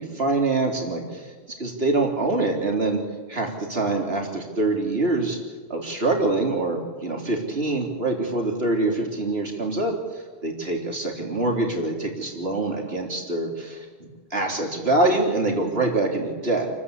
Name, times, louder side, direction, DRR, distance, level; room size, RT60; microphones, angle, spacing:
voice 1, 0.0-1.3 1.6-5.4 5.7-16.7, right 2 dB, 65° right, 1 dB, 3.9 m, -25 dB
28.5 x 14.0 x 8.4 m, 1.5 s
omnidirectional pair, 1.1 m